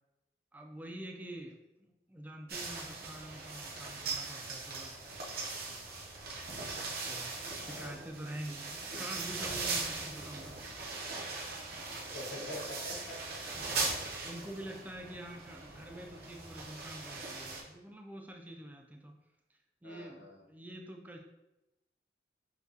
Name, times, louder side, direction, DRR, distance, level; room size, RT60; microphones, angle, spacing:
voice 1, 0.5-5.0 7.0-10.7 14.2-19.1 19.8-21.2, right 1 dB, 10° right, 2 dB, 0.3 m, -46 dB
sound 1, 2.5-17.6, right 3 dB, 50° right, 0.7 m, -40 dB
voice 2, 7.6-8.0 12.1-13.4 19.8-20.4, left 2 dB, 70° left, -3 dB, 1.2 m, -46 dB
5.8 x 2.2 x 2.7 m, 0.98 s
head